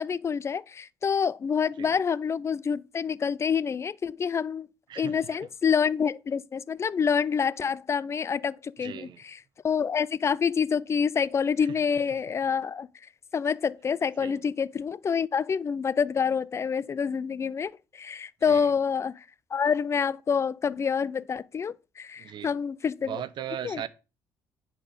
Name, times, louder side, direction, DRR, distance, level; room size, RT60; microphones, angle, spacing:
voice 1, 0.0-4.7 5.0-9.4 9.6-12.9 13.3-19.2 19.5-23.2 23.6-23.8, left 6 dB, 30° left, 0.4 m, -27 dB
voice 2, 4.9-5.2 8.8-9.2 11.7-11.8 14.2-14.4 18.5-18.7 22.2-22.5 23.1-23.9, right 10 dB, 55° right, 0.7 m, -37 dB
9.8 x 4.4 x 5.1 m
cardioid pair, 105°, 9 cm